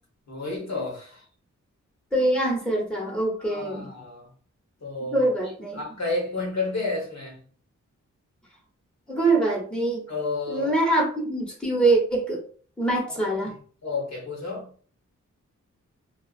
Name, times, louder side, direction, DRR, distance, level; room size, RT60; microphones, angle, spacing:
voice 1, 0.3-1.2 3.4-4.3 4.8-5.3 5.7-7.4 10.1-10.7 13.1-14.7, left 3 dB, 60° left, 1.1 m, -31 dB
voice 2, 2.1-3.9 5.1-5.8 9.1-10.0 10.5-12.4 12.8-13.5, right 2 dB, 5° left, 1.1 m, -24 dB
2.5 x 2.3 x 2.4 m
wide cardioid pair, 75°, 31 cm